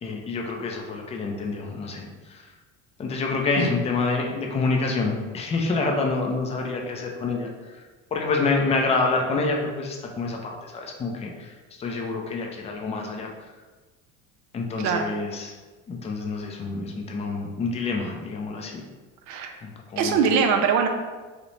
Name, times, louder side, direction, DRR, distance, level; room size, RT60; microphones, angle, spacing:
voice 1, 0.0-2.5 3.0-7.8 8.1-13.3 14.5-15.5 15.9-18.8 19.6-20.2, left 3 dB, 20° left, 1 dB, 0.3 m, -27 dB
voice 2, 20.0-20.9, right 6 dB, 55° right, 5 dB, 0.4 m, -22 dB
2.6 x 2.1 x 3.0 m, 1.3 s
cardioid pair, 105°, 35 cm